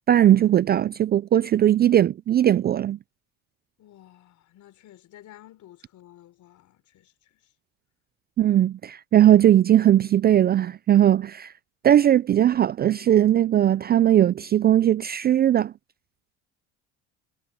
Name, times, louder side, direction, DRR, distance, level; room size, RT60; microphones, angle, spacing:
voice 1, 0.1-3.0 8.4-11.5 11.8-15.7, right 11 dB, 30° right, 0.4 m, -19 dB
voice 2, 3.8-7.5, left 13 dB, 55° left, 4.2 m, -52 dB
supercardioid pair, 95°, 35 cm